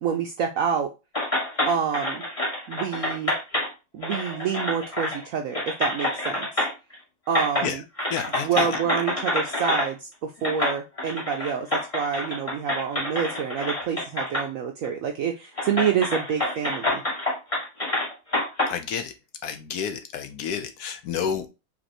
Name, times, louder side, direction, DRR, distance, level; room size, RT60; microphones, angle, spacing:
voice 1, 0.0-0.9 1.7-2.2 2.7-3.3 3.9-6.5 7.3-7.8 8.4-17.0, right 7 dB, 75° right, 0.7 m, -27 dB
sound 1, 1.1-3.7 4.0-5.2 5.5-6.9 7.3-7.7 8.0-9.9 10.4-14.5 14.8-14.9 15.6-18.7, left 1 dB, 20° left, 1.7 m, -27 dB
voice 2, 8.1-8.7 18.7-19.1 19.4-21.5, left 7 dB, 70° left, 1.0 m, -30 dB
5.1 x 3.2 x 2.9 m
omnidirectional pair, 1.9 m